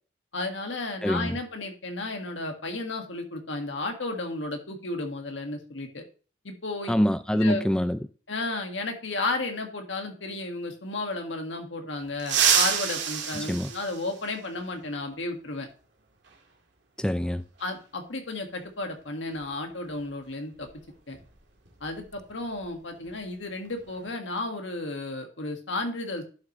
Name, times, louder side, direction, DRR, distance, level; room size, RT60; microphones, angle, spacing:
voice 1, 0.3-6.0 6.4-7.0 7.4-7.6 8.3-15.7 17.6-20.7 21.1-21.2 21.8-26.2, left 2 dB, 85° left, 1.8 m, -33 dB
voice 2, 1.0-1.4 6.9-8.0 13.4-13.7 17.0-17.4, equal, 5° left, 0.3 m, -25 dB
sound 1, 12.2-14.6 16.3-16.4 17.6-17.7 19.3-19.5 19.8-20.0 20.5-22.7 23.0-23.2 23.6-24.1, right 7 dB, 75° right, 2.0 m, -28 dB
11.0 x 6.0 x 3.1 m
head